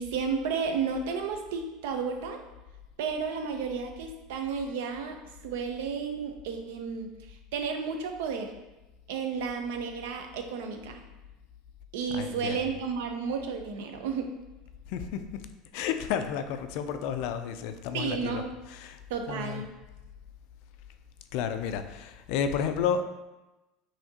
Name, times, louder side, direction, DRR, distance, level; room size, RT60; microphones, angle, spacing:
voice 1, 0.0-2.4 3.0-5.2 5.4-8.5 9.1-11.0 11.9-14.3 17.9-18.5 19.1-19.7, right 5 dB, 80° right, 5 dB, 0.6 m, -32 dB
voice 2, 12.1-12.6 14.9-15.2 15.7-19.0 19.3-19.6 21.3-23.0, left 7 dB, 65° left, 9 dB, 0.3 m, -31 dB
5.7 x 2.8 x 2.8 m, 1.0 s
supercardioid pair, 145°, 0 cm